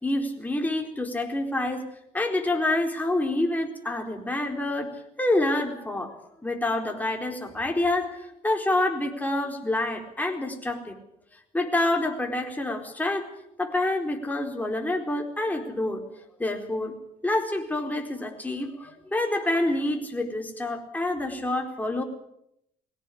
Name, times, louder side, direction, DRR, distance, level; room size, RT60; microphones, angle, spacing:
voice 1, 0.0-1.9 2.1-4.9 5.2-6.2 6.4-11.0 11.5-13.3 13.6-16.0 16.4-17.0 17.2-22.0, left 2 dB, 10° left, 2 dB, 4.3 m, -27 dB
21.0 x 17.5 x 8.6 m, 0.77 s
cardioid pair, 110°, 17 cm